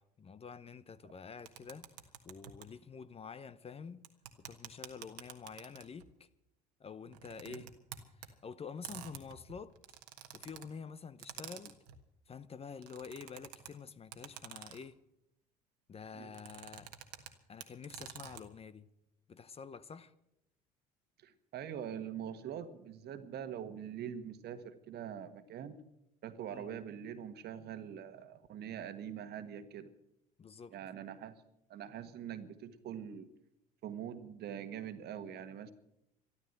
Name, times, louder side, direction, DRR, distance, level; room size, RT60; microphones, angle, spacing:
voice 1, 0.0-1.9 2.2-4.0 4.4-6.3 6.8-7.7 8.2-9.8 10.3-11.8 12.3-15.0 15.9-16.9 17.5-18.9 19.3-20.1 26.5-26.8 30.4-30.8, left 6 dB, 30° left, 0.8 m, -48 dB
sound 1, 1.5-2.7 4.0-6.1 7.1-8.3 8.8-10.7 11.2-12.0 12.7-13.7 14.1-14.9 16.3-17.3 17.6-18.4, right 12 dB, 80° right, 1.5 m, -49 dB
voice 2, 21.2-25.8 26.2-29.9 30.7-31.4 31.7-33.3 33.8-35.7, right 9 dB, 55° right, 1.5 m, -44 dB
13.0 x 12.5 x 7.9 m
hypercardioid pair, 70°, 20 cm